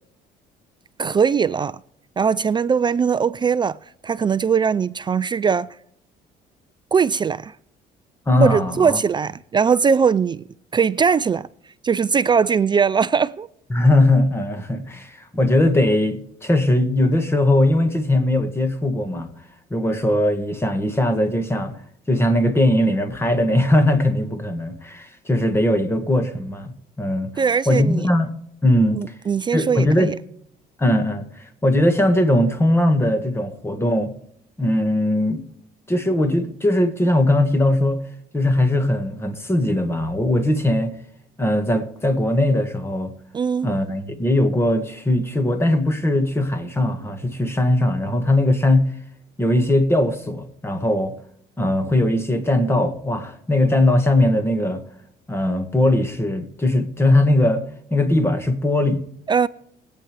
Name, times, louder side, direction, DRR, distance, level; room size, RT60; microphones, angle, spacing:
voice 1, 1.0-1.8 2.2-3.8 4.0-5.7 6.9-7.6 8.4-10.4 10.7-11.5 11.8-13.5 27.4-28.1 28.9-30.1 43.3-43.7 59.3-59.5, right 6 dB, 25° right, 0.4 m, -20 dB
voice 2, 8.3-9.0 13.7-19.3 19.7-21.8 22.1-27.3 27.7-28.3 28.6-29.1 29.5-30.1 30.8-34.1 34.6-35.4 35.9-38.0 38.3-40.9 41.4-43.1 43.6-48.9 49.4-51.2 51.6-54.8 55.3-57.7 57.9-59.0, left 1 dB, 15° left, 1.8 m, -20 dB
22.0 x 9.0 x 3.3 m
cardioid pair, 110°, 17 cm